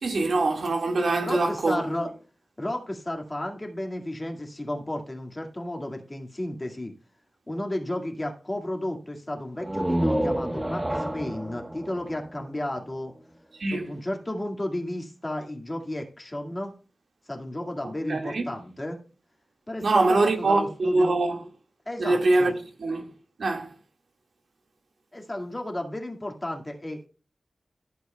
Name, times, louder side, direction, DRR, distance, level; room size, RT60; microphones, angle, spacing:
voice 1, 0.0-1.8 13.6-13.9 18.1-18.5 19.8-21.4 22.0-22.5 22.8-23.1 23.4-23.7, right 2 dB, 70° right, 1.8 m, -23 dB
voice 2, 1.2-2.1 2.6-6.9 7.5-13.1 13.7-16.7 17.3-19.0 19.7-21.1 21.9-22.5 25.1-27.1, left 1 dB, 20° left, 2.0 m, -33 dB
sound 1, 9.6-13.2, right 1 dB, 10° right, 0.6 m, -29 dB
14.5 x 7.9 x 2.3 m
wide cardioid pair, 130°, 0 cm